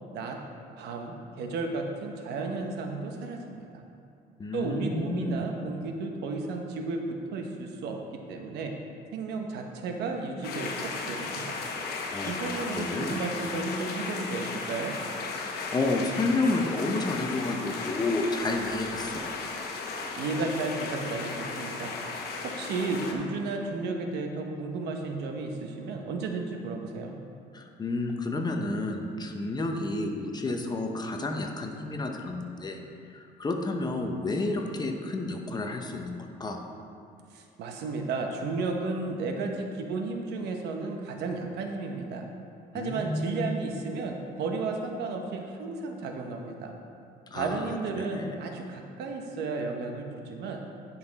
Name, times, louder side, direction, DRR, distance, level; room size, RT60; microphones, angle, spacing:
voice 1, 0.8-3.7 4.5-8.0 8.3-8.7 9.1-11.6 12.2-14.9 20.2-21.9 22.4-27.1 37.3-42.3 42.7-46.7 47.3-50.6, right 3 dB, 80° right, 3 dB, 1.0 m, -33 dB
voice 2, 4.4-5.4 12.1-13.2 15.5-19.2 27.5-32.8 33.1-36.6 42.7-43.6 47.3-48.4, left 2 dB, 25° left, 3 dB, 0.8 m, -31 dB
sound 1, 10.4-23.1, left 4 dB, 70° left, 1.1 m, -35 dB
10.5 x 5.6 x 4.1 m, 2.6 s
cardioid pair, 110°, 17 cm